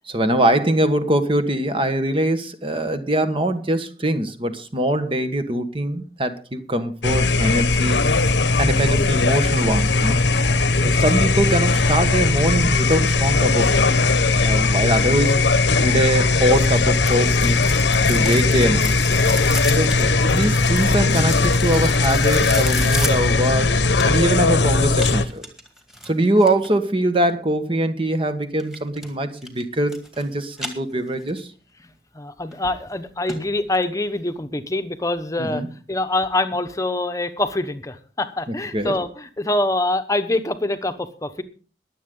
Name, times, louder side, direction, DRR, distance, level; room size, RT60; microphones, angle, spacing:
voice 1, 0.1-8.0 8.6-10.2 10.8-13.8 14.4-15.4 15.8-17.6 18.1-18.9 19.7-23.7 24.0-25.5 26.0-31.5 35.4-35.7 38.7-39.0, right 1 dB, 30° right, 9 dB, 1.3 m, -22 dB
sound 1, 7.0-25.3, left 3 dB, 80° left, 1.1 m, -18 dB
sound 2, 16.6-24.4 24.9-26.7 28.6-29.1 29.4-30.2 30.5-31.4 31.8-31.9 32.5-32.6 32.9-33.0 33.3-33.4 33.7-33.8, equal, 5° right, 2.1 m, -33 dB
voice 2, 32.1-35.6 35.9-41.4, left 2 dB, 20° left, 9 dB, 1.1 m, -25 dB
22.0 x 7.9 x 3.8 m, 0.39 s
head